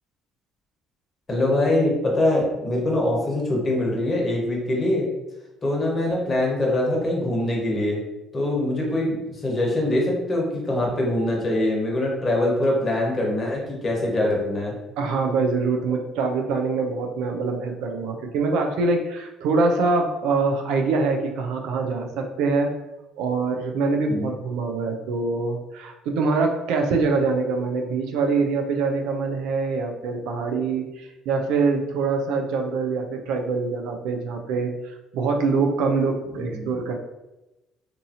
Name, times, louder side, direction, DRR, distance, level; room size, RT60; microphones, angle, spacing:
voice 1, 1.3-5.1 5.6-8.0 8.3-14.7 24.1-24.3 36.3-36.7, left 1 dB, 35° left, -2 dB, 1.1 m, -23 dB
voice 2, 15.0-22.7 23.2-36.9, right 4 dB, 75° right, 3 dB, 0.4 m, -24 dB
2.6 x 2.6 x 2.6 m, 0.98 s
supercardioid pair, 65°, 0 cm